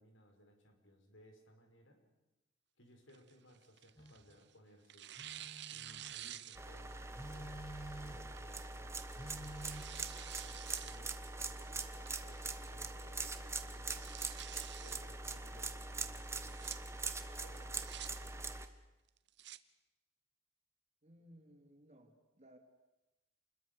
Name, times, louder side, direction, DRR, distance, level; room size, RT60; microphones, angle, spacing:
voice 1, 0.0-2.0 2.8-5.1 5.7-9.3 10.4-14.1 14.8-16.9 17.3-18.6, equal, 85° left, 4 dB, 5.0 m, -62 dB
Tearing, 3.1-4.4 4.9-6.9 7.4-7.5 8.4-8.7 9.2-11.0 11.4-11.5 12.1-12.5 12.8-12.9 13.2-13.3 13.7-15.0 16.3-16.8 17.5-18.1 19.1-19.6, right 12 dB, 60° right, 0.9 m, -50 dB
Telephone, 4.0-4.2 5.1-6.2 7.1-8.4 9.1-9.8, right 1 dB, 20° left, 2.6 m, -50 dB
sound 1, 6.5-18.7, right 3 dB, 15° right, 1.2 m, -43 dB
voice 2, 21.0-22.6, equal, 35° right, 3 dB, 3.2 m, -61 dB
28.0 x 21.5 x 6.8 m, 1.0 s
head